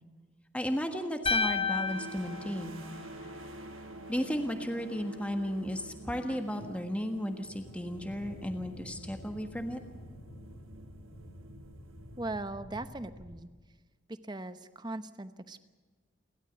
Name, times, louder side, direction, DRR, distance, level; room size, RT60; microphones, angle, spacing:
voice 1, 0.5-2.8 4.1-9.8, equal, 5° left, 5 dB, 1.4 m, -34 dB
sound 1, 1.2-12.8, right 2 dB, 85° right, 1.2 m, -48 dB
sound 2, 1.3-3.5, left 4 dB, 30° left, 1.1 m, -32 dB
sound 3, 2.7-5.9 6.6-13.4, equal, 75° left, 4.4 m, -51 dB
voice 2, 12.2-13.5 14.1-15.7, right 2 dB, 20° right, 11 dB, 0.9 m, -39 dB
29.5 x 13.0 x 8.1 m, 1.4 s
head